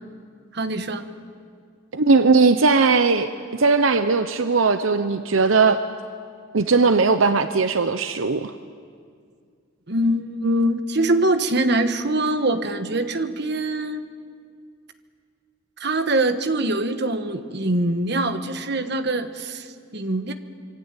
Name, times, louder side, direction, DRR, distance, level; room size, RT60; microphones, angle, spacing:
voice 1, 0.5-1.1 9.9-14.0 15.8-20.3, right 1 dB, 55° right, 9 dB, 1.4 m, -23 dB
voice 2, 1.9-5.8 6.5-8.5, right 4 dB, 75° right, 10 dB, 0.8 m, -18 dB
25.5 x 23.5 x 9.1 m, 2.2 s
head